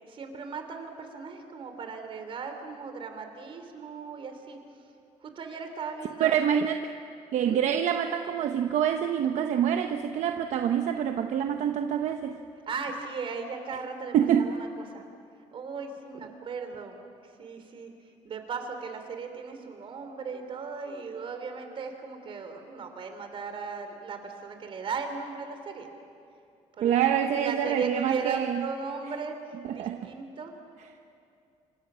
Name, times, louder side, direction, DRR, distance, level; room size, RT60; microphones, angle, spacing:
voice 1, 0.0-4.6 5.2-6.4 7.4-7.6 12.7-15.0 15.5-17.0 17.2-17.9 18.2-25.9 26.7-27.0 27.3-30.6, right 5 dB, 45° right, 6 dB, 3.4 m, -37 dB
voice 2, 6.2-6.9 7.3-12.4 14.1-14.5 26.8-28.6 29.7-30.1, right 9 dB, 70° right, 6 dB, 1.0 m, -26 dB
27.0 x 25.5 x 6.3 m, 2.6 s
cardioid pair, 140°, 12 cm